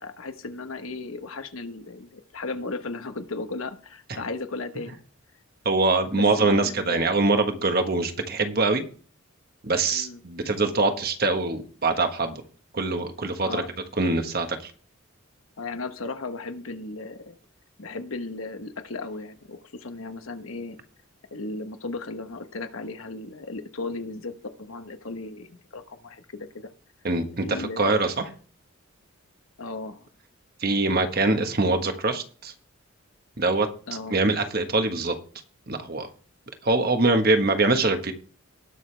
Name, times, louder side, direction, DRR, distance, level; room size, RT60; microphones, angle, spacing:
voice 1, 0.0-5.0 6.1-7.0 9.9-10.2 13.4-13.7 15.6-17.4 17.8-20.8 21.3-26.7 27.4-28.0 29.6-30.1 33.9-34.2, left 3 dB, 75° left, 8 dB, 1.2 m, -35 dB
voice 2, 5.6-8.8 9.6-12.4 12.7-13.6 14.0-14.7 27.0-28.2 30.6-32.5 33.4-33.7 34.1-35.1 35.7-36.1 36.6-38.1, right 3 dB, 45° right, 6 dB, 1.4 m, -23 dB
19.0 x 6.5 x 3.4 m, 0.41 s
head